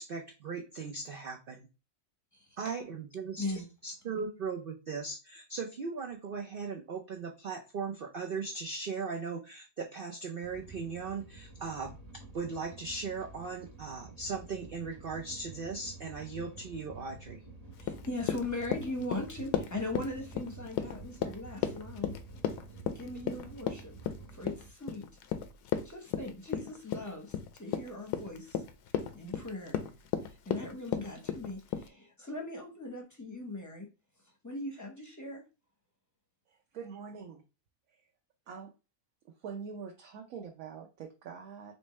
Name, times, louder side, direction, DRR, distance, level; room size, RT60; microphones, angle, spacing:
voice 1, 0.0-1.7 2.6-3.4 3.8-12.0 12.3-17.4, right 4 dB, 85° right, 2 dB, 0.4 m, -38 dB
voice 2, 2.3-2.7 3.4-3.7 17.8-22.2 22.9-23.9 24.3-25.1 25.8-28.6 29.1-29.8 30.2-33.9 34.4-35.4, left 2 dB, 15° left, 1 dB, 0.7 m, -39 dB
sound 1, 10.4-24.7, right 3 dB, 15° right, 1.0 m, -50 dB
Run, 17.8-31.9, left 9 dB, 80° left, 1.2 m, -35 dB
voice 3, 36.5-37.4 38.5-38.7 39.4-41.8, right 6 dB, 65° right, 2 dB, 1.0 m, -44 dB
4.2 x 3.3 x 3.1 m, 0.30 s
omnidirectional pair, 1.7 m